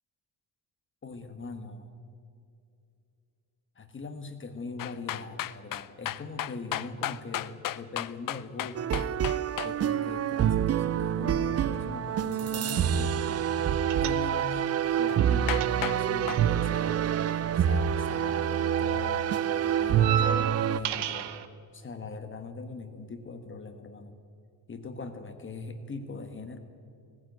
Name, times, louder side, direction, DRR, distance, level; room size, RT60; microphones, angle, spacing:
voice 1, 1.0-1.9 3.7-9.3 9.6-13.4 14.0-14.6 15.0-17.1 17.5-21.3 21.7-24.2 24.7-26.6, left 3 dB, 30° left, 8 dB, 1.4 m, -41 dB
sound 1, 4.8-9.7 15.1-15.2 15.5-16.0 16.3-16.4, left 12 dB, 55° left, 0.7 m, -34 dB
sound 2, 8.7-20.8, right 9 dB, 40° right, 0.5 m, -27 dB
sound 3, 13.9-14.7 14.9-18.3 18.6-21.5, right 9 dB, 80° right, 1.2 m, -35 dB
18.5 x 15.0 x 9.3 m, 2.5 s
cardioid pair, 160°, 40 cm